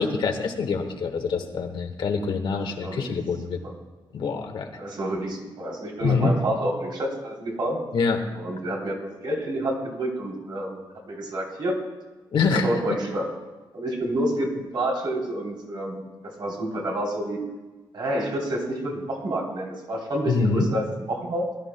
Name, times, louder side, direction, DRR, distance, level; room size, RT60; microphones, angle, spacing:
voice 1, 0.0-3.6 4.1-4.7 6.0-6.3 7.9-8.2 12.3-12.7 20.2-20.7, left 4 dB, 75° left, 3 dB, 1.5 m, -25 dB
voice 2, 2.5-3.0 4.8-7.9 8.3-11.8 12.6-13.3 13.7-16.0 16.4-17.4 17.9-21.5, right 1 dB, 65° right, -1 dB, 3.3 m, -28 dB
21.5 x 13.0 x 2.3 m, 1.2 s
wide cardioid pair, 155°, 8 cm